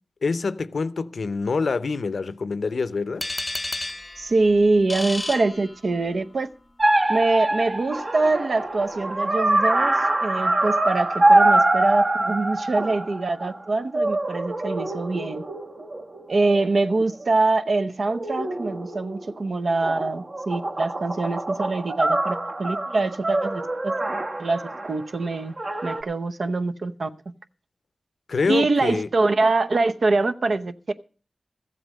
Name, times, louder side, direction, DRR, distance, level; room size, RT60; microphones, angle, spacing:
voice 1, 0.2-3.3 28.3-29.1, left 4 dB, 80° left, 0.7 m, -26 dB
sound 1, 3.2-6.2, left 2 dB, 30° left, 0.7 m, -32 dB
voice 2, 4.2-6.5 7.1-15.4 16.3-23.9 24.4-25.6 25.8-27.1 28.5-30.9, right 3 dB, 70° right, 0.8 m, -24 dB
sound 2, 6.8-13.6 13.9-17.2 18.1-19.4 19.8-25.0 25.6-26.0, right 2 dB, 55° right, 1.2 m, -24 dB
14.5 x 7.9 x 6.4 m
cardioid pair, 50°, 0 cm